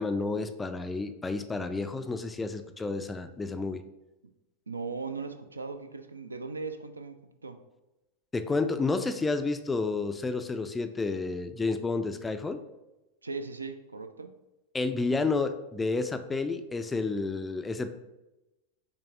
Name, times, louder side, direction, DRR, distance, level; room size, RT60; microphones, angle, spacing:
voice 1, 0.0-3.8 8.3-12.6 14.7-17.9, left 3 dB, 10° left, 9 dB, 0.3 m, -30 dB
voice 2, 4.7-7.6 13.2-14.3, right 4 dB, 80° right, 8 dB, 0.3 m, -38 dB
5.6 x 3.3 x 2.5 m, 1.0 s
figure-of-eight pair, 90°, 0 cm